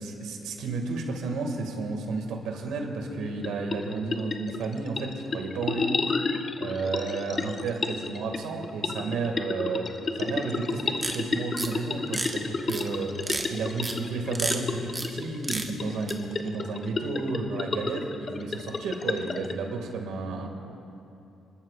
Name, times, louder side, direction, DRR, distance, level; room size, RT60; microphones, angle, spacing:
voice 1, 0.0-6.2 6.6-9.9 10.2-20.5, right 3 dB, 85° right, 2 dB, 2.0 m, -32 dB
sound 1, 3.2-19.5, left 4 dB, 40° left, 0.7 m, -32 dB
sound 2, 11.0-11.2 11.6-11.7 12.1-12.3 12.7-12.8 13.2-13.5 13.8-13.9 14.3-14.6 14.9-15.2 15.4-15.7 16.1-16.2, right 2 dB, 20° right, 1.3 m, -30 dB
28.0 x 12.0 x 2.5 m, 2.9 s
cardioid pair, 90°, 0 cm